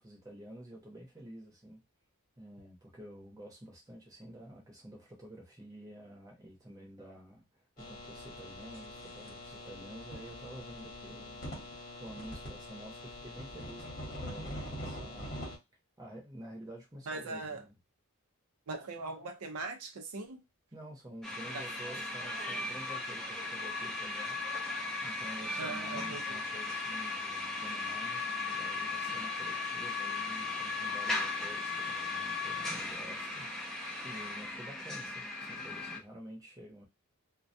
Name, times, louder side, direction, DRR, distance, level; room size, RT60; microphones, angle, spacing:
voice 1, 0.0-1.8 2.4-15.4 16.0-17.8 20.7-36.8, right 1 dB, 15° right, 0.8 m, -50 dB
sound 1, 7.8-15.6, left 1 dB, 40° left, 1.0 m, -44 dB
voice 2, 17.1-17.6 18.7-20.4 21.5-21.6 25.6-26.2, right 3 dB, 80° right, 0.5 m, -40 dB
sound 2, 21.2-36.0, left 3 dB, ahead, 0.5 m, -37 dB
2.2 x 2.2 x 2.6 m
head